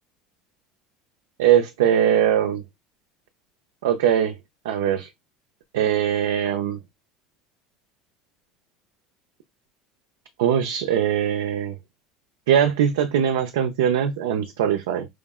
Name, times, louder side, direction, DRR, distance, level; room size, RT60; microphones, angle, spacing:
voice 1, 1.4-2.6 3.8-4.3 4.6-5.1 5.7-6.8 10.4-11.7 12.5-15.1, right 9 dB, 85° right, 0.6 m, -21 dB
4.9 x 2.1 x 3.5 m
supercardioid pair, 100°, 0 cm